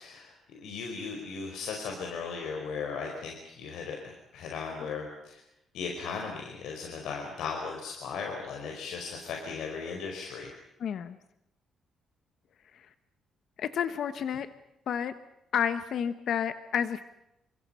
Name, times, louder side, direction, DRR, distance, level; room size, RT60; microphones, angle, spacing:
voice 1, 0.0-4.0 4.3-5.4 5.7-10.5, left 5 dB, 85° left, 2 dB, 5.0 m, -37 dB
voice 2, 10.8-11.2 12.7-12.9 13.6-14.5 14.9-15.1 15.5-17.0, left 8 dB, 55° left, 11 dB, 1.2 m, -30 dB
29.5 x 26.0 x 5.7 m, 0.86 s
cardioid pair, 165°, 0 cm